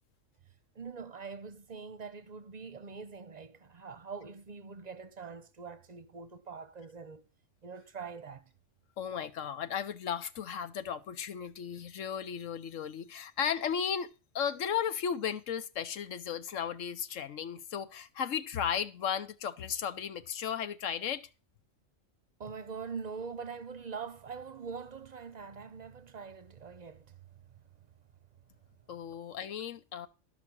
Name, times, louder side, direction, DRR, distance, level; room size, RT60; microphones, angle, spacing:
voice 1, 0.7-7.3 7.6-8.5 22.4-27.2 27.5-27.9, right 5 dB, 40° right, 0.8 m, -44 dB
voice 2, 9.0-14.1 14.3-21.3 28.9-30.1, left 8 dB, 75° left, 1.2 m, -35 dB
12.5 x 6.0 x 6.0 m
omnidirectional pair, 1.3 m